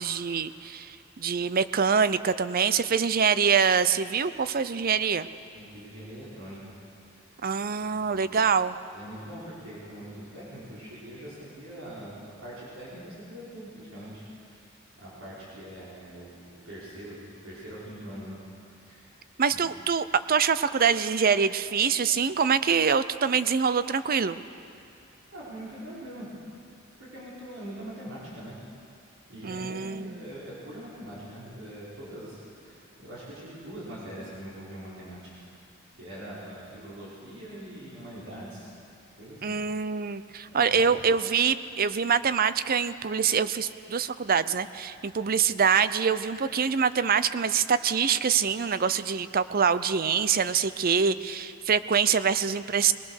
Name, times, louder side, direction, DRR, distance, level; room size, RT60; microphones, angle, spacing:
voice 1, 0.0-5.3 7.4-8.8 19.4-24.4 29.4-30.2 39.4-52.9, right 6 dB, 45° right, 14 dB, 0.6 m, -25 dB
voice 2, 5.5-6.8 7.8-8.3 8.9-12.1 12.4-14.6 15.0-18.4 18.8-19.1 19.5-19.6 25.3-26.3 27.1-28.6 29.3-35.5 36.0-38.7 39.2-39.6 40.5-40.9 41.3-41.4, right 1 dB, 70° right, -8 dB, 5.5 m, -43 dB
21.5 x 20.5 x 6.5 m, 2.6 s
head